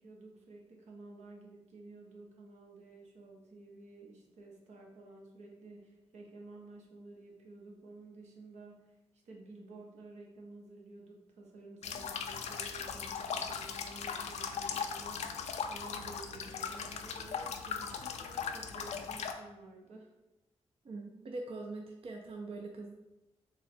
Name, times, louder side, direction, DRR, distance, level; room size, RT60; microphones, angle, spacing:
voice 1, 0.0-9.0 9.2-15.4 15.7-20.1, right 2 dB, 85° right, 0 dB, 0.7 m, -52 dB
sound 1, 11.8-19.3, left 6 dB, 75° left, 0.4 m, -39 dB
voice 2, 20.8-22.9, right 2 dB, 55° right, 2 dB, 0.4 m, -42 dB
3.7 x 2.0 x 4.2 m, 0.97 s
cardioid pair, 60°, 11 cm